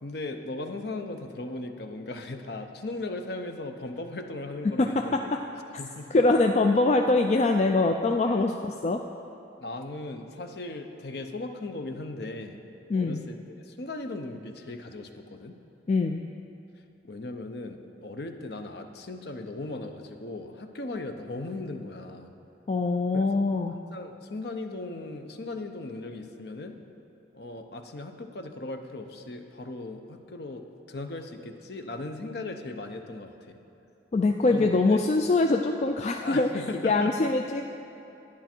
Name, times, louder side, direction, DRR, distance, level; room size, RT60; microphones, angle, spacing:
voice 1, 0.0-5.2 5.8-6.1 8.3-8.5 9.6-12.6 12.9-15.6 17.0-22.3 23.1-23.2 23.9-26.8 27.3-33.6 34.5-35.0 36.2-37.3, left 2 dB, 60° left, 5 dB, 0.7 m, -37 dB
voice 2, 4.8-5.2 6.1-9.0 12.9-13.2 15.9-16.2 22.7-23.8 34.1-36.5 36.8-37.6, left 3 dB, 35° left, 4 dB, 0.3 m, -23 dB
10.5 x 10.0 x 4.4 m, 2.9 s
head